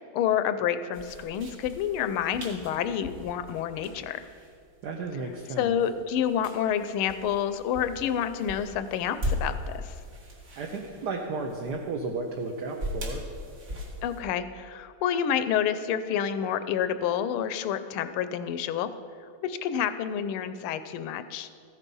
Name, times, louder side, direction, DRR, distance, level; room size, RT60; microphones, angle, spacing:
voice 1, 0.1-4.3 5.6-9.9 14.0-18.9 19.4-21.5, left 9 dB, 85° left, 12 dB, 1.5 m, -28 dB
sound 1, 0.9-14.2, left 1 dB, 40° right, 2.1 m, -39 dB
voice 2, 4.8-5.7 10.6-13.2, right 3 dB, 60° right, 2 dB, 1.2 m, -33 dB
14.0 x 8.2 x 5.4 m, 2.3 s
omnidirectional pair, 2.3 m